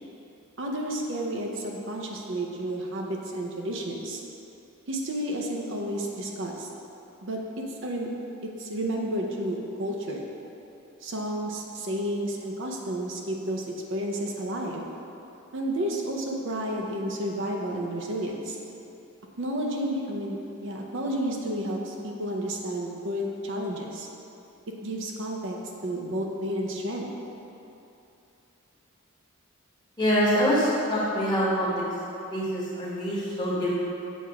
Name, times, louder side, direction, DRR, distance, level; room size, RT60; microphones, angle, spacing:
voice 1, 0.6-4.2 4.9-6.7 7.2-8.1 8.6-10.3 11.0-14.9 15.5-18.6 19.4-24.1 24.8-25.6 25.8-27.1, right 1 dB, 60° right, -1 dB, 0.6 m, -31 dB
voice 2, 30.0-31.8 32.3-33.8, equal, 20° left, -8 dB, 1.3 m, -25 dB
7.3 x 2.4 x 5.7 m, 2.8 s
head